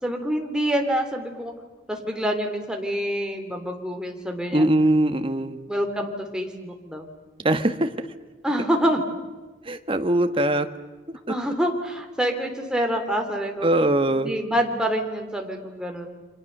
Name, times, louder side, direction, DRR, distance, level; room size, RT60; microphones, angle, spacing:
voice 1, 0.0-1.5 1.9-4.7 5.7-7.1 8.4-9.0 11.3-13.7 14.1-16.1, equal, 5° right, 3 dB, 3.3 m, -26 dB
voice 2, 4.5-5.6 7.4-8.1 9.6-10.7 11.1-11.3 13.6-14.3, right 1 dB, 30° right, 8 dB, 1.5 m, -22 dB
29.0 x 25.0 x 6.7 m, 1.3 s
head